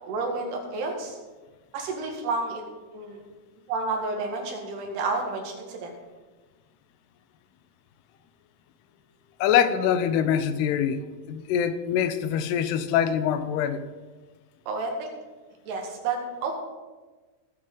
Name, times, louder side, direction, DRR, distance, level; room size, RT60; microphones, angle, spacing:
voice 1, 0.0-1.2 1.7-2.6 2.9-3.2 3.7-5.9 14.7-15.1 15.7-16.5, right 3 dB, 85° right, 1 dB, 4.0 m, -30 dB
voice 2, 9.4-11.0 11.3-13.8, left 9 dB, 85° left, 11 dB, 2.8 m, -24 dB
17.5 x 8.3 x 3.9 m, 1.3 s
omnidirectional pair, 4.6 m